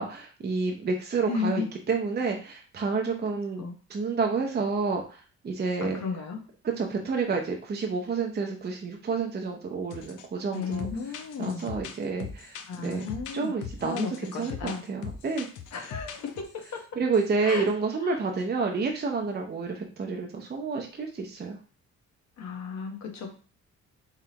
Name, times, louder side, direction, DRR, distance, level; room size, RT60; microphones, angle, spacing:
voice 1, 0.0-3.6 3.9-6.0 6.6-10.9 11.4-13.1 13.3-15.5 17.0-21.6, right 4 dB, 35° right, 2 dB, 0.7 m, -29 dB
voice 2, 1.3-1.7 3.6-3.7 5.8-6.4 10.5-11.7 12.7-13.5 13.8-14.8 15.7-16.8 17.4-17.7 18.0-18.2 22.4-23.3, left 5 dB, 65° left, 3 dB, 1.2 m, -33 dB
sound 1, 9.9-10.3 10.5-16.8 17.1-17.7, left 7 dB, 85° left, 0.7 m, -41 dB
3.6 x 3.2 x 2.9 m, 0.39 s
cardioid pair, 90°, 30 cm